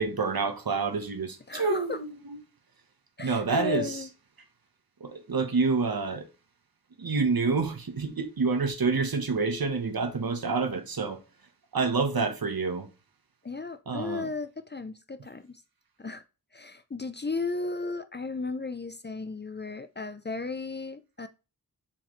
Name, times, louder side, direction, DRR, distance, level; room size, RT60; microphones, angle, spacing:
voice 1, 0.0-2.4 3.2-4.0 5.0-6.3 7.0-11.2 11.7-12.9 13.9-14.3, right 4 dB, 65° right, 1.2 m, -28 dB
voice 2, 1.5-2.0 3.2-4.1 13.4-15.6 16.0-16.2 16.5-21.3, left 3 dB, 25° left, 0.5 m, -35 dB
7.2 x 4.8 x 3.1 m
wide cardioid pair, 55°, 39 cm